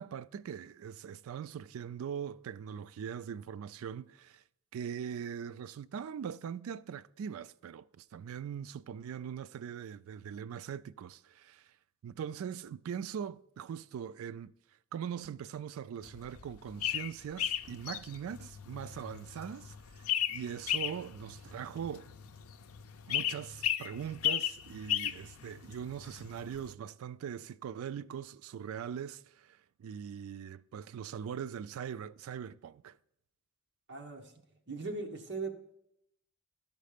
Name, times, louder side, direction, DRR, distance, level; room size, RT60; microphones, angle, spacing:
voice 1, 0.0-4.4 4.7-11.7 12.0-14.5 14.9-22.1 23.1-33.0, right 8 dB, 70° right, 0.3 m, -41 dB
sound 1, 16.0-26.7, left 11 dB, 80° left, 0.5 m, -36 dB
voice 2, 33.9-34.3 34.7-35.5, right 3 dB, 55° right, 1.2 m, -39 dB
12.5 x 5.3 x 5.0 m
head